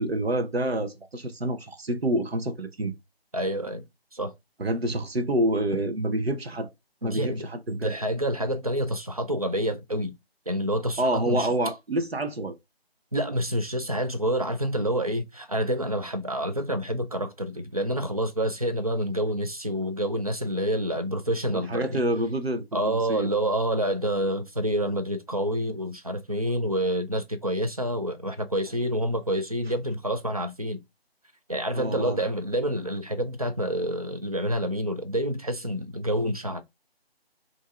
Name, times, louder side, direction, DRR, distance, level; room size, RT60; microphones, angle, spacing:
voice 1, 0.0-2.9 4.6-6.7 7.0-7.9 11.0-12.5 21.5-23.3 31.7-32.2, right 1 dB, 75° right, 1.0 m, -27 dB
voice 2, 3.3-3.8 4.1-4.3 7.0-10.1 10.5-11.5 13.1-22.0 22.7-30.8 31.5-36.6, equal, 35° right, 0.4 m, -28 dB
6.1 x 2.8 x 2.4 m
figure-of-eight pair, 160°, 31 cm